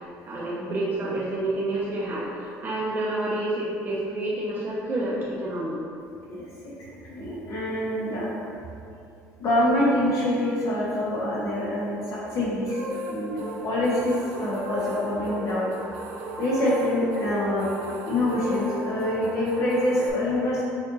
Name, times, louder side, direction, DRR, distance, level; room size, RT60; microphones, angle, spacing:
voice 1, 0.3-5.8, right 1 dB, 30° right, -7 dB, 0.8 m, -29 dB
voice 2, 6.3-8.4 9.4-12.8 13.1-14.1 14.4-15.7 16.4-17.7 18.1-20.6, left 1 dB, 50° left, -7 dB, 1.2 m, -25 dB
sound 1, 12.7-20.1, equal, 85° right, 0.5 m, -35 dB
6.6 x 2.6 x 2.7 m, 2.5 s
cardioid pair, 105°, 7 cm